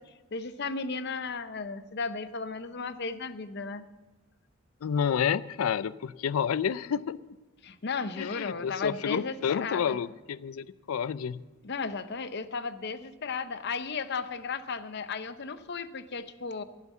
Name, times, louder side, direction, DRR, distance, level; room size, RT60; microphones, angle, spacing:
voice 1, 0.3-3.8 7.6-10.0 11.6-16.6, left 4 dB, 55° left, 12 dB, 0.7 m, -35 dB
voice 2, 4.8-7.2 8.2-11.4, left 7 dB, 90° left, 18 dB, 0.4 m, -29 dB
16.0 x 7.5 x 7.2 m, 1.2 s
head